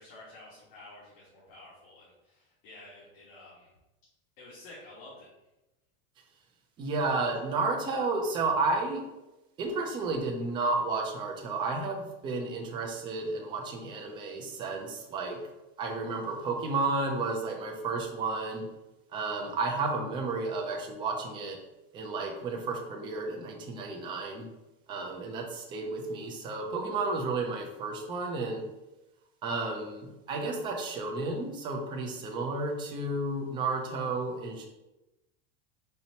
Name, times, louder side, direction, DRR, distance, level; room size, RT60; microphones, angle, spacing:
voice 1, 0.0-3.7 4.4-5.3, left 2 dB, 65° left, -6 dB, 1.4 m, -50 dB
voice 2, 6.8-9.1 9.6-15.4 15.8-18.7 19.1-21.6 21.9-24.5 24.9-28.6 29.4-34.6, right 3 dB, 15° right, 1 dB, 0.4 m, -32 dB
4.4 x 4.1 x 2.8 m, 0.98 s
supercardioid pair, 170°, 29 cm